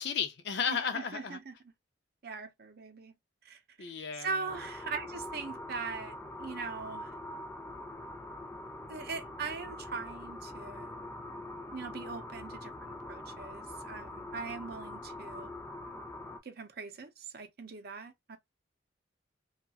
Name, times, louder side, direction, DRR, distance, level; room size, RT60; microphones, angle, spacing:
voice 1, 0.0-1.4 3.8-4.4, left 6 dB, 65° left, 0.5 m, -34 dB
voice 2, 0.7-1.5 2.2-3.1 3.4-3.6 4.2-7.2 8.9-10.9 11.7-15.5 16.4-18.4, right 4 dB, 55° right, 0.6 m, -41 dB
sound 1, 4.5-16.4, left 1 dB, 10° left, 0.3 m, -44 dB
2.8 x 2.3 x 2.3 m
head